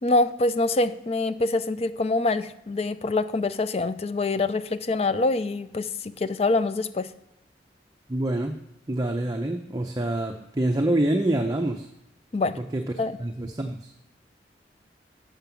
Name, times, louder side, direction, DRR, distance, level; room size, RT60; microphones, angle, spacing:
voice 1, 0.0-7.1 12.3-12.6 13.0-13.2, left 2 dB, 35° left, 12 dB, 0.4 m, -25 dB
voice 2, 8.1-8.6 8.9-11.9 12.6-12.8 13.2-13.9, right 1 dB, 20° right, 3 dB, 0.6 m, -26 dB
7.5 x 5.8 x 6.9 m, 0.90 s
head